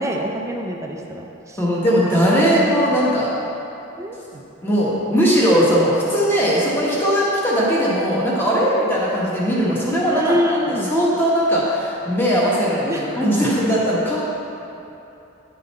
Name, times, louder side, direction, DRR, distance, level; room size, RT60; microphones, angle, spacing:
voice 1, 0.0-1.6 2.5-2.9 4.0-4.2 10.1-10.9 12.8-13.1, equal, 15° right, 1 dB, 0.4 m, -25 dB
voice 2, 1.6-3.3 4.6-10.6 10.9-14.2, equal, 10° left, -6 dB, 1.1 m, -19 dB
9.6 x 3.9 x 4.2 m, 2.8 s
head